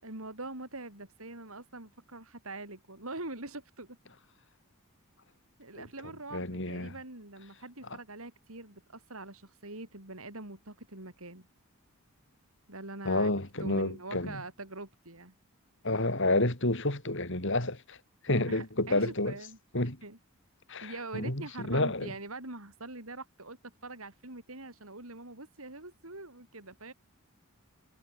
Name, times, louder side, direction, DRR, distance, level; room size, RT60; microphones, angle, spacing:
voice 1, 0.0-4.0 5.6-11.5 12.7-13.3 13.6-15.3 18.4-19.6 20.0-20.2 20.8-26.9, right 2 dB, 75° right, 7.1 m, -44 dB
voice 2, 6.3-6.9 13.0-14.4 15.8-18.0 18.2-19.3 19.7-20.0 20.7-22.1, left 2 dB, 60° left, 6.1 m, -30 dB
head